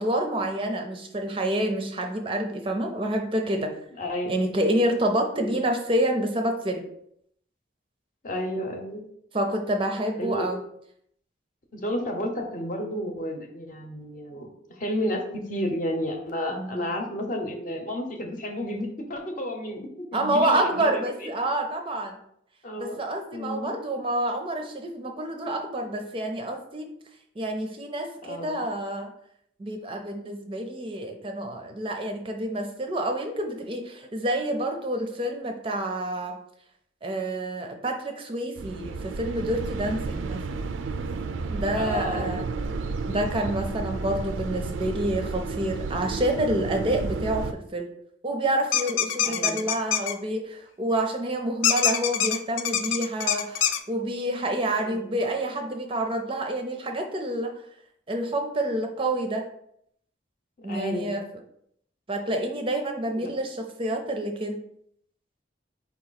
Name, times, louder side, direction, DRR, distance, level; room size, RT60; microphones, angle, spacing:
voice 1, 0.0-3.8 4.3-6.8 9.3-10.6 16.5-16.9 20.1-22.2 22.8-26.9 27.4-29.1 29.6-36.4 37.0-40.4 41.5-42.5 43.1-47.9 48.2-57.6 58.1-59.5 60.6-61.2 62.1-64.6, right 1 dB, 30° right, 4 dB, 0.4 m, -28 dB
voice 2, 4.0-4.3 5.4-5.6 8.2-9.0 10.2-10.5 11.7-15.2 15.5-21.3 22.6-23.0 23.3-23.8 28.2-28.6 41.8-42.4 49.2-49.7 54.8-55.1 60.6-61.3 63.2-63.3, left 1 dB, 45° left, 3 dB, 0.8 m, -32 dB
sound 1, 38.6-47.5, right 4 dB, 90° right, 0.4 m, -32 dB
sound 2, 48.7-50.1 51.6-53.8, left 9 dB, 90° left, 0.4 m, -24 dB
4.6 x 2.9 x 4.0 m, 0.71 s
head